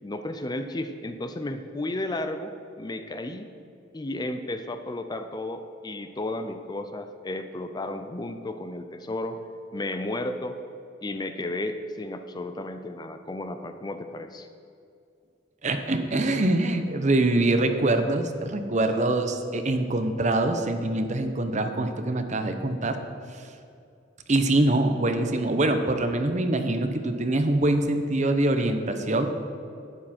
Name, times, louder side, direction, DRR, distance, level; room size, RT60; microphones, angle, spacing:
voice 1, 0.0-3.5 3.9-9.4 9.7-10.6 11.0-14.5, left 1 dB, 20° left, 8 dB, 0.5 m, -33 dB
voice 2, 15.6-23.0 23.3-23.5 24.3-29.3, right 2 dB, 40° right, 7 dB, 0.8 m, -24 dB
12.0 x 9.9 x 4.3 m, 2.5 s
head